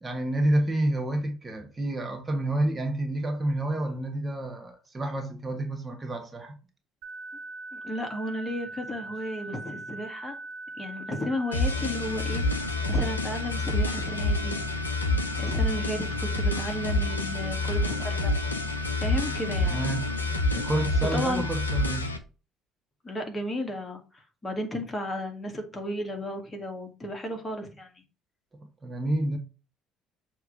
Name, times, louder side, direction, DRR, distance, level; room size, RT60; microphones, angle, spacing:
voice 1, 0.0-6.5 19.6-20.1 20.5-22.1 28.8-29.4, right 1 dB, 25° right, 1.3 m, -29 dB
sound 1, 7.0-22.0, right 3 dB, 65° right, 0.9 m, -41 dB
voice 2, 7.7-10.4 10.8-12.4 12.9-14.6 15.4-18.4 19.0-19.9 21.1-21.4 23.0-28.0, left 1 dB, 20° left, 2.0 m, -33 dB
sound 2, 11.5-22.2, left 2 dB, 90° left, 0.6 m, -28 dB
7.0 x 3.1 x 5.0 m
figure-of-eight pair, 55°, 0 cm